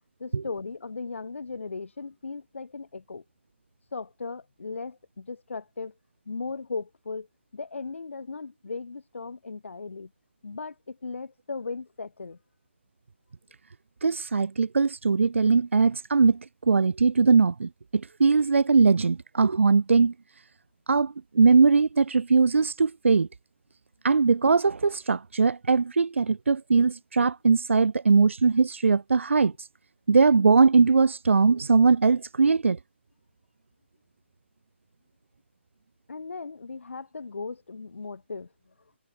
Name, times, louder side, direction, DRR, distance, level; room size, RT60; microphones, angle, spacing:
voice 1, 0.2-3.2 3.9-5.9 6.3-7.3 7.5-10.1 10.4-12.4 36.1-38.5, left 4 dB, 90° left, 3.2 m, -37 dB
voice 2, 14.0-20.1 20.9-23.3 24.0-29.7 30.1-32.8, right 4 dB, 85° right, 1.3 m, -21 dB
hypercardioid pair, 170°, 7 cm